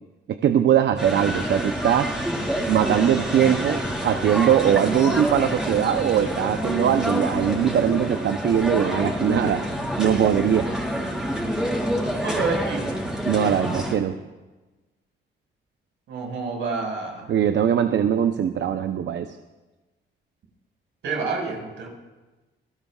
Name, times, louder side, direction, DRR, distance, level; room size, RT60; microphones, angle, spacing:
voice 1, 0.3-2.1 2.7-9.6 10.0-10.7 13.2-14.2 17.3-19.4, right 9 dB, 65° right, 8 dB, 0.7 m, -21 dB
sound 1, 1.0-14.0, equal, 5° right, 4.4 m, -27 dB
voice 2, 12.2-12.8 16.1-17.3 21.0-21.9, right 4 dB, 80° right, 0 dB, 5.3 m, -28 dB
27.5 x 17.5 x 2.4 m, 1.2 s
cardioid pair, 90°, 20 cm